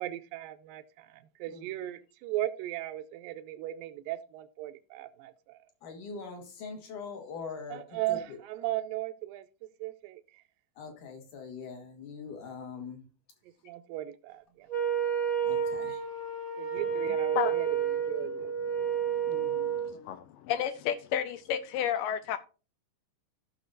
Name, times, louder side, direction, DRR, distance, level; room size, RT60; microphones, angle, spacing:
voice 1, 0.0-5.6 7.7-10.4 13.6-14.7 16.6-18.5, right 15 dB, 80° right, 2.2 m, -37 dB
voice 2, 5.8-7.8 10.8-13.0 15.4-16.0 19.3-19.7, left 5 dB, 60° left, 3.1 m, -42 dB
Wind instrument woodwind instrument, 14.7-19.9, right 8 dB, 40° left, 0.7 m, -30 dB
voice 3, 18.8-22.4, left 9 dB, 80° left, 2.2 m, -33 dB
15.0 x 6.1 x 2.6 m
omnidirectional pair, 4.2 m